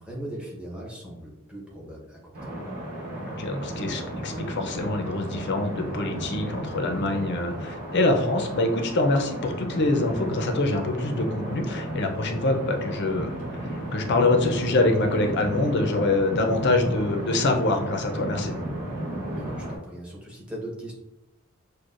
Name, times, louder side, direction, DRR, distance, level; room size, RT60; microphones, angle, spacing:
voice 1, 0.0-2.5 19.2-21.0, right 1 dB, 5° right, -4 dB, 0.9 m, -39 dB
sound 1, 2.3-19.8, right 1 dB, 40° right, 1.1 m, -34 dB
voice 2, 3.2-18.6, left 2 dB, 50° left, 4 dB, 0.6 m, -25 dB
6.2 x 2.2 x 2.5 m, 0.91 s
head